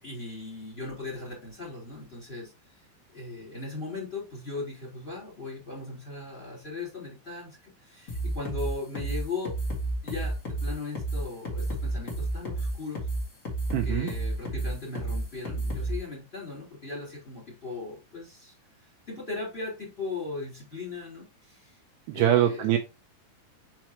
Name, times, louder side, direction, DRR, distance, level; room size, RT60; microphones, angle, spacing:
voice 1, 0.0-2.8 3.1-9.5 10.0-13.0 13.8-18.5 18.8-21.8 22.1-22.7, left 3 dB, 15° left, -3 dB, 3.2 m, -38 dB
sound 1, 8.1-16.0, right 2 dB, 50° left, 0.9 m, -31 dB
voice 2, 13.7-14.1 22.2-22.8, right 12 dB, 85° right, 4 dB, 2.4 m, -23 dB
6.1 x 5.8 x 3.0 m, 0.27 s
omnidirectional pair, 5.5 m